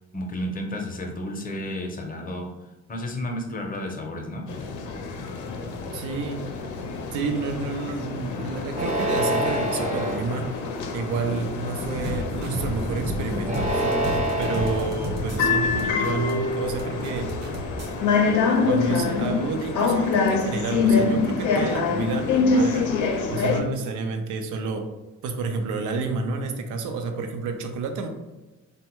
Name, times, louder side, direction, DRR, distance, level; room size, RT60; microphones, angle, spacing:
voice 1, 0.1-2.5 2.9-4.5, left 1 dB, 30° left, 3 dB, 0.7 m, -32 dB
sound 1, 4.5-23.6, left 4 dB, 80° left, 0.5 m, -26 dB
voice 2, 5.9-6.5 7.1-10.5 10.9-17.4 18.6-22.9 23.3-24.9 25.2-28.1, right 4 dB, 80° right, 6 dB, 0.5 m, -30 dB
sound 2, 8.7-10.2 10.9-11.4 13.4-14.9, right 1 dB, 25° right, 0.6 m, -26 dB
sound 3, 11.8-18.0, equal, 55° right, 1.0 m, -33 dB
3.4 x 2.2 x 2.9 m, 1.1 s
cardioid pair, 90°, 30 cm